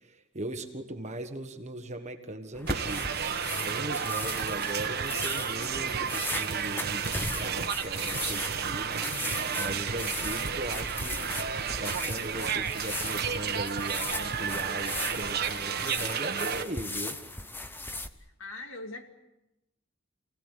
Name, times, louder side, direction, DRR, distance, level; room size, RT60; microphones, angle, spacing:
voice 1, 0.0-7.1 7.4-8.9 9.6-11.2 11.8-17.2, right 1 dB, 35° right, 6 dB, 1.5 m, -39 dB
sound 1, 2.5-18.1, left 2 dB, 10° left, 1.0 m, -38 dB
sound 2, 2.7-16.6, right 7 dB, 50° right, 1.4 m, -32 dB
sound 3, 4.1-14.6, right 3 dB, 90° right, 1.0 m, -45 dB
voice 2, 18.2-19.1, left 2 dB, 65° left, 5 dB, 2.4 m, -41 dB
28.5 x 18.0 x 8.3 m, 0.95 s
head